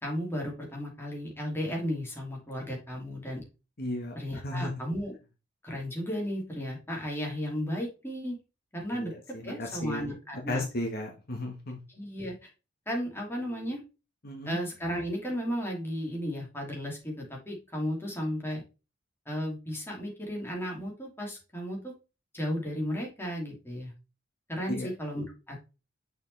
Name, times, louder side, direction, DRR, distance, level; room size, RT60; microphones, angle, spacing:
voice 1, 0.0-3.4 4.1-5.1 5.6-8.4 8.7-9.1 9.4-10.6 11.9-12.5 12.9-13.8 14.4-18.6 19.3-21.9 22.3-23.9 24.5-25.6, equal, 10° left, -1 dB, 2.7 m, -34 dB
voice 2, 3.8-4.7 8.9-10.1 10.5-11.8 14.2-14.6 24.7-24.9, left 1 dB, 50° left, 2 dB, 1.6 m, -35 dB
6.5 x 5.2 x 3.3 m, 0.29 s
head